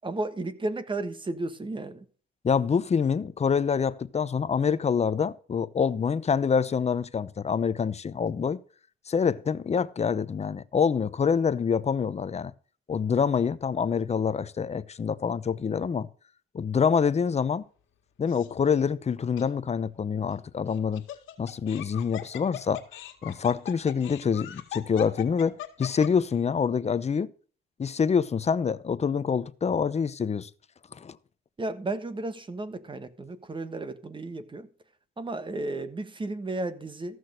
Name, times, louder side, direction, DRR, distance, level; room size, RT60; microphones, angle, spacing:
voice 1, 0.0-2.0 31.6-34.7 35.2-37.2, right 2 dB, 25° right, 1.3 m, -33 dB
voice 2, 2.4-8.6 9.1-12.5 12.9-16.1 16.5-17.6 18.2-21.0 21.4-22.8 23.2-27.3 27.8-30.5 30.9-31.2, left 6 dB, 35° left, 0.8 m, -26 dB
Laughter, 18.3-18.7 19.4-19.5 20.7-26.3, left 12 dB, 85° left, 2.0 m, -40 dB
14.5 x 6.4 x 6.5 m
cardioid pair, 90°, 20 cm